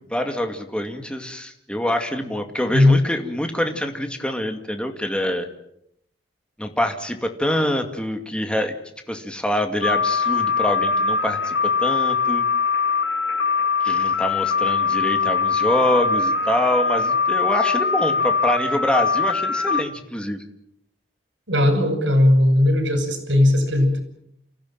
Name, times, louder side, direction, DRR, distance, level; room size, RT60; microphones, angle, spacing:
voice 1, 0.0-5.5 6.6-8.8 9.1-12.5 13.8-20.4, equal, 5° left, 5 dB, 2.3 m, -25 dB
sound 1, 9.8-19.8, left 5 dB, 80° left, 3.0 m, -22 dB
voice 2, 21.5-24.0, left 1 dB, 85° right, 8 dB, 6.5 m, -17 dB
29.5 x 15.5 x 9.1 m, 0.76 s
head